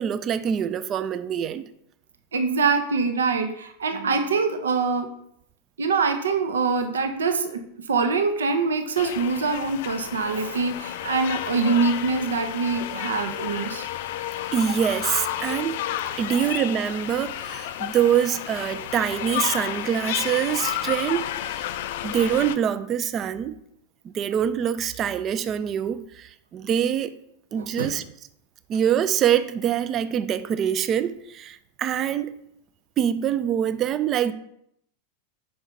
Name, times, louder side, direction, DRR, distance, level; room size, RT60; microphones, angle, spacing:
voice 1, 0.0-1.6 14.5-15.8 16.2-21.7 22.0-23.6 24.0-27.2 27.5-28.0 28.7-32.3 33.0-34.3, right 9 dB, 30° right, 0.4 m, -25 dB
voice 2, 2.3-5.1 5.8-7.6 7.9-13.9 27.6-27.9, right 4 dB, 70° right, 0.6 m, -24 dB
sound 1, 9.0-22.6, left 11 dB, 55° left, 0.4 m, -31 dB
5.4 x 4.4 x 5.0 m
figure-of-eight pair, 90°, 0 cm